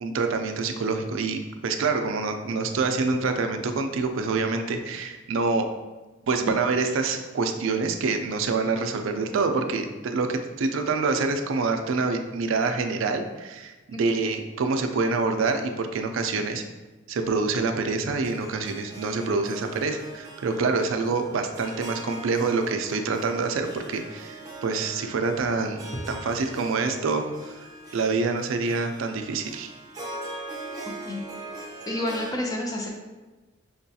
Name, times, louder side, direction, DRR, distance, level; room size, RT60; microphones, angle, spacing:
voice 1, 0.0-5.7 6.3-16.6 17.1-27.7 27.9-29.7, right 4 dB, 70° right, 6 dB, 0.4 m, -26 dB
Harp, 18.2-32.3, right 2 dB, 15° right, 0.7 m, -41 dB
voice 2, 31.9-32.9, left 1 dB, 20° left, -1 dB, 0.6 m, -29 dB
5.7 x 2.3 x 2.7 m, 1.2 s
head